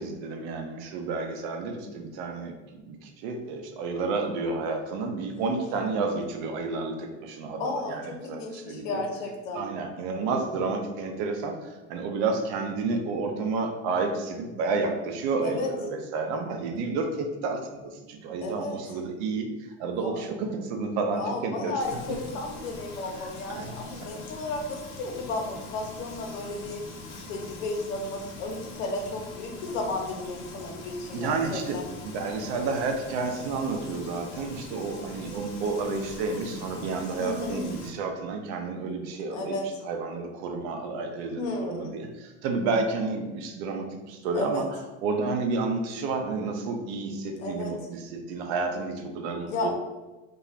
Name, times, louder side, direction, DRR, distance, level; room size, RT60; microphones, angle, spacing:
voice 1, 0.0-2.5 2.9-9.0 9.5-19.5 19.8-21.8 22.1-22.2 23.5-23.7 24.0-24.2 31.1-39.6 39.8-44.7 45.0-49.7, right 4 dB, 70° right, 5 dB, 0.6 m, -30 dB
voice 2, 7.6-9.7 15.4-15.7 18.4-18.8 19.9-20.1 21.1-26.8 27.3-31.9 37.2-37.6 39.3-39.6 41.4-41.9 44.3-44.6 47.4-47.7 49.5-49.7, left 2 dB, 90° left, 2 dB, 0.7 m, -33 dB
Frying (food), 21.8-37.9, left 2 dB, 50° left, 0.7 m, -43 dB
2.4 x 2.2 x 3.0 m, 1.1 s
supercardioid pair, 120°, 36 cm